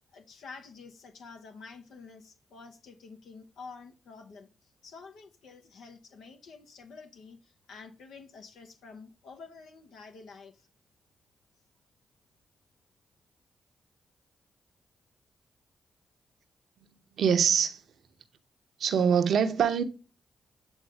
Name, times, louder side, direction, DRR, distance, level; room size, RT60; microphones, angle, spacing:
voice 1, 0.1-10.7, left 4 dB, 80° left, 0.8 m, -49 dB
voice 2, 17.2-17.8 18.8-19.8, right 7 dB, 70° right, 0.7 m, -24 dB
8.2 x 3.9 x 3.3 m
hypercardioid pair, 40°, 0 cm